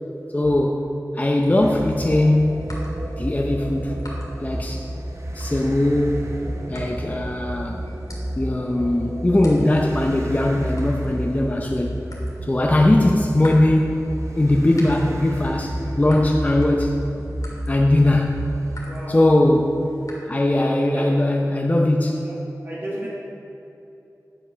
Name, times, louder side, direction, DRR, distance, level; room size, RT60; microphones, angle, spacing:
voice 1, 0.3-2.8 3.2-3.9 4.4-4.9 5.3-6.4 6.7-7.8 8.4-12.0 12.4-17.0 17.7-18.4 19.1-19.9 20.3-22.3, left 1 dB, 25° left, 1 dB, 0.6 m, -20 dB
sound 1, 1.4-20.2, left 1 dB, 65° left, 1.9 m, -44 dB
sound 2, 1.6-18.8, right 1 dB, 50° right, 0.8 m, -31 dB
voice 2, 18.9-19.2 20.5-21.1 22.1-22.3 22.6-23.1, right 1 dB, 35° right, -7 dB, 1.7 m, -34 dB
9.2 x 5.2 x 5.6 m, 2.9 s
wide cardioid pair, 60°, 6 cm